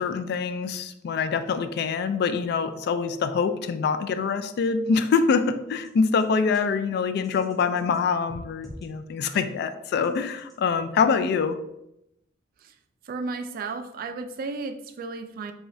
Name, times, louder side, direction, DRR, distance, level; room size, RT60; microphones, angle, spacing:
voice 1, 0.0-11.6, left 5 dB, 55° left, 10 dB, 0.3 m, -25 dB
sound 1, 5.8-5.9 6.2-6.3 6.5-6.6 7.2-8.0 8.3-8.9 9.3-9.4 10.0-10.5, equal, ahead, 0.7 m, -45 dB
voice 2, 13.1-15.5, right 3 dB, 50° right, 8 dB, 0.3 m, -33 dB
4.8 x 2.3 x 2.6 m, 0.83 s
head